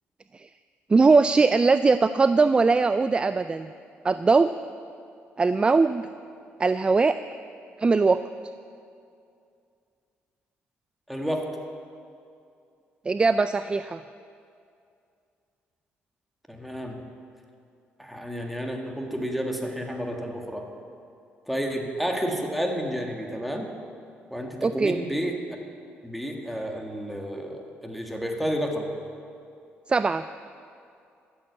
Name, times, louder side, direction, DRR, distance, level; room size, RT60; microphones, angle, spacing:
voice 1, 0.9-3.7 4.0-4.5 5.4-6.1 6.6-7.2 7.8-8.2 13.1-14.0 24.6-25.0 29.9-30.2, right 4 dB, 25° right, 12 dB, 0.3 m, -20 dB
voice 2, 11.1-11.6 16.5-17.0 18.0-20.7 21.5-23.7 24.3-25.4 26.0-28.9, equal, ahead, 1 dB, 1.8 m, -30 dB
13.0 x 7.8 x 8.2 m, 2.5 s
cardioid pair, 90°, 4 cm